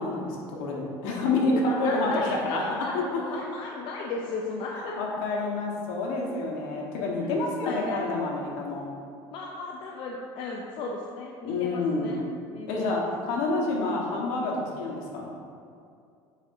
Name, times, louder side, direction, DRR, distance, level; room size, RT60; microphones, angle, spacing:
voice 1, 0.0-3.4 4.7-8.9 11.4-12.2 12.7-15.4, left 2 dB, 80° left, -1 dB, 1.3 m, -28 dB
voice 2, 1.5-5.0 7.6-8.0 9.3-13.1, left 3 dB, 60° left, -1 dB, 0.6 m, -35 dB
9.7 x 4.2 x 2.7 m, 2.4 s
supercardioid pair, 100°, 10 cm